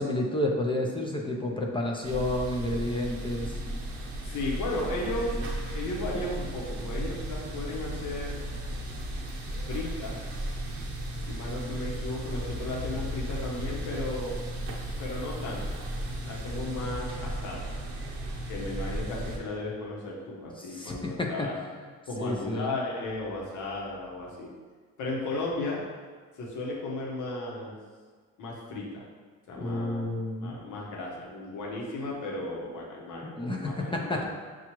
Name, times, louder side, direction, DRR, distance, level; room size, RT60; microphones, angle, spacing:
voice 1, 0.0-3.5 20.6-21.5 22.2-22.7 29.6-30.5 33.2-34.3, left 1 dB, 15° left, -1 dB, 0.5 m, -30 dB
sound 1, 2.0-19.4, right 1 dB, 50° right, 0.9 m, -35 dB
voice 2, 4.2-5.4 5.7-8.4 9.7-10.2 11.3-14.4 15.0-15.8 16.3-17.7 18.5-21.6 22.1-24.5 25.0-25.8 26.4-27.7 28.4-29.0 29.5-30.1 30.4-34.3, left 2 dB, 80° left, -3 dB, 1.0 m, -35 dB
6.0 x 2.4 x 3.0 m, 1.6 s
cardioid pair, 90°, 30 cm